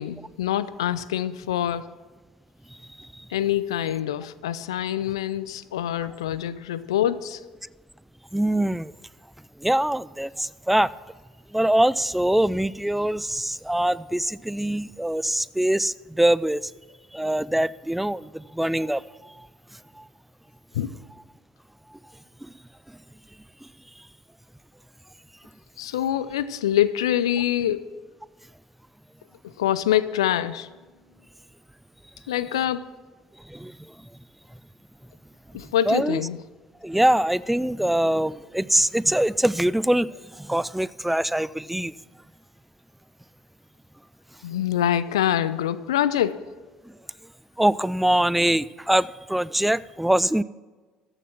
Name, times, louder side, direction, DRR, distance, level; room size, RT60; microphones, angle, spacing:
voice 1, 0.0-1.9 3.3-7.4 20.8-20.9 25.8-27.9 29.6-30.7 32.3-32.9 35.5-36.4 44.4-46.5, left 11 dB, 80° left, 0.4 m, -25 dB
voice 2, 8.3-8.9 9.6-10.9 11.5-16.7 17.1-19.0 33.5-33.7 35.8-36.2 36.8-41.9 47.6-50.4, right 1 dB, 5° right, 0.3 m, -23 dB
14.0 x 6.5 x 6.0 m
hypercardioid pair, 60°, 3 cm